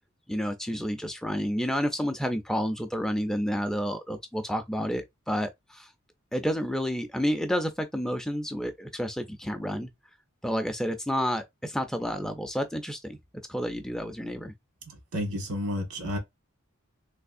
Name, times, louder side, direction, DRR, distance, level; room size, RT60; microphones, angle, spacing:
voice 1, 0.3-5.9 6.3-9.9 10.4-13.2 13.5-14.5, equal, 5° left, 0.3 m, -30 dB
voice 2, 14.9-16.2, left 1 dB, 80° right, 1.4 m, -31 dB
3.3 x 3.0 x 2.5 m
head